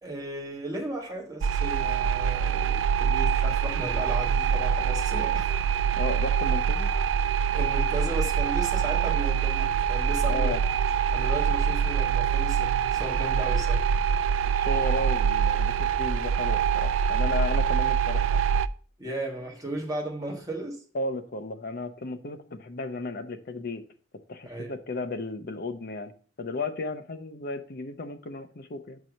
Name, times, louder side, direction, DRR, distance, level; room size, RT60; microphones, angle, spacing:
voice 1, 0.0-5.5 7.5-10.6 11.1-13.8 19.0-20.8 24.4-24.7, right 1 dB, 20° right, 1.5 m, -35 dB
sound 1, 1.4-18.7, right 7 dB, 85° right, 0.3 m, -25 dB
voice 2, 5.9-6.9 10.3-10.6 14.4-18.4 20.9-23.8 24.3-26.1 26.4-29.0, left 2 dB, 50° left, 0.7 m, -34 dB
5.9 x 4.8 x 5.2 m
head